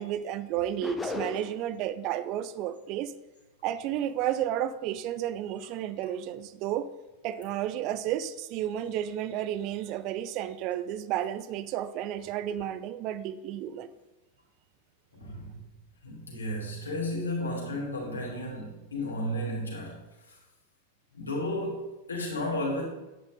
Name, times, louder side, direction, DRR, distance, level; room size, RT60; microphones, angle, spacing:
voice 1, 0.0-3.1 3.6-6.9 7.2-13.9, right 11 dB, 40° right, 0.5 m, -32 dB
sound 1, 0.8-1.7, left 3 dB, 10° left, 0.9 m, -34 dB
voice 2, 15.1-15.6 16.0-20.0 20.3-20.4 21.1-22.8, left 1 dB, 75° left, 3.5 m, -33 dB
10.5 x 9.6 x 3.8 m
figure-of-eight pair, 90°, 0 cm